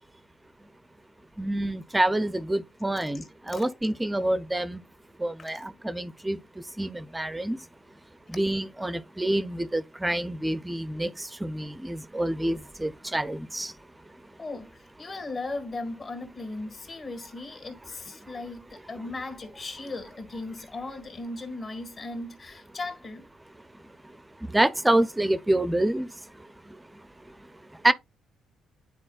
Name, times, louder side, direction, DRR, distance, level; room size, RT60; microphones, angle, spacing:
voice 1, 1.4-4.8 5.2-6.4 6.8-7.6 8.3-13.7 24.4-26.1 27.8-27.9, right 1 dB, 10° right, 0.4 m, -27 dB
voice 2, 3.0-3.7 5.4-5.6 8.3-8.4 14.4-23.3, left 2 dB, 40° left, 1.7 m, -37 dB
9.9 x 4.1 x 2.3 m
cardioid pair, 90°, 0 cm